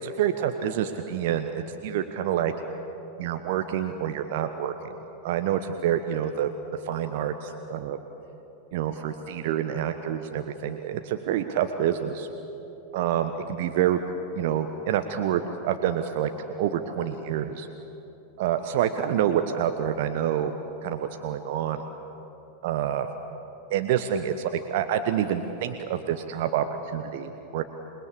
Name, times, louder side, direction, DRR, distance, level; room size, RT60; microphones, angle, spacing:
voice 1, 0.0-2.5 3.2-5.0 5.2-6.5 6.8-8.0 8.7-12.3 12.9-14.0 14.3-16.3 16.6-17.7 18.4-20.5 20.8-21.8 22.6-23.1 23.7-24.3 24.7-27.6, right 10 dB, 50° right, 8 dB, 1.1 m, -27 dB
27.5 x 20.5 x 8.5 m, 3.0 s
figure-of-eight pair, 90°, 0 cm